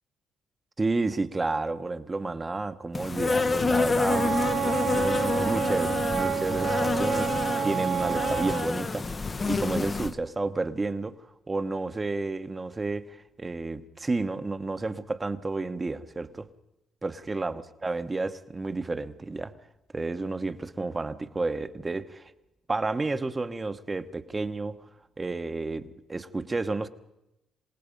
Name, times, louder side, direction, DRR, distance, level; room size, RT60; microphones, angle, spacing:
voice 1, 0.8-7.3 7.6-9.1 9.5-11.1 11.5-16.5 17.0-19.5 19.9-22.3 22.7-24.8 25.2-26.9, right 3 dB, 20° right, 1.0 m, -31 dB
Insect, 2.9-10.1, left 4 dB, 25° left, 0.8 m, -28 dB
Wind instrument woodwind instrument, 4.1-8.7, right 8 dB, 55° right, 2.0 m, -29 dB
27.5 x 18.0 x 5.3 m
cardioid pair, 120°, 0 cm